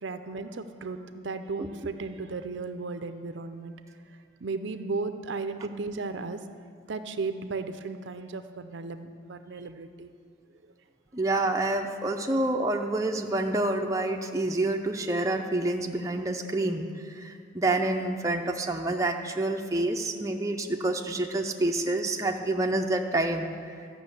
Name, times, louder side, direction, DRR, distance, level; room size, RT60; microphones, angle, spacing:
voice 1, 0.0-3.7 4.4-6.4 6.9-10.1, right 3 dB, 65° right, 9 dB, 0.5 m, -35 dB
voice 2, 11.1-23.5, right 2 dB, 15° right, 2 dB, 0.6 m, -28 dB
13.0 x 6.1 x 8.1 m, 2.2 s
head